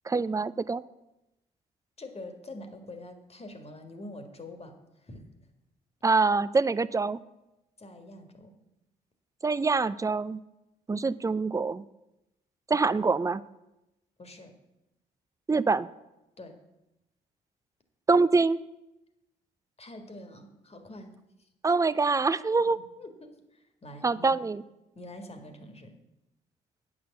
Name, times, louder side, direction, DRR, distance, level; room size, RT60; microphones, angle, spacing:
voice 1, 0.1-0.8 6.0-7.2 9.4-10.4 10.9-11.8 12.7-13.4 15.5-15.9 18.1-18.6 21.6-22.8 24.0-24.6, right 4 dB, 15° right, 16 dB, 0.5 m, -25 dB
voice 2, 2.0-5.2 7.8-8.5 14.2-14.5 16.4-16.6 19.8-21.5 23.0-24.3 24.9-25.9, left 1 dB, 30° left, 6 dB, 1.8 m, -45 dB
8.5 x 6.3 x 7.1 m, 0.93 s
hypercardioid pair, 50°, 19 cm